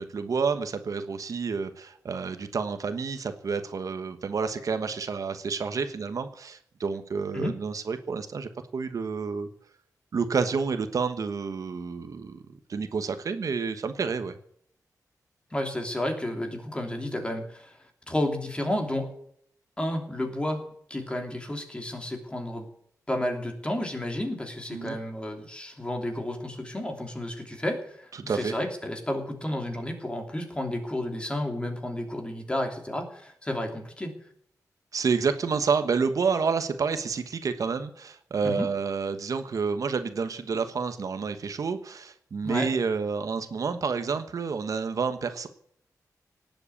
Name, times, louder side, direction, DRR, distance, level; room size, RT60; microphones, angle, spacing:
voice 1, 0.0-9.5 10.1-12.4 12.7-14.4 24.7-25.0 28.3-28.5 34.9-45.5, right 5 dB, 60° right, 9 dB, 1.3 m, -29 dB
voice 2, 15.5-17.8 18.1-19.1 19.8-22.7 23.1-34.1 38.4-38.7 42.4-42.7, left 1 dB, 15° left, 4 dB, 3.1 m, -31 dB
18.5 x 7.9 x 8.6 m, 0.66 s
wide cardioid pair, 135°, 7 cm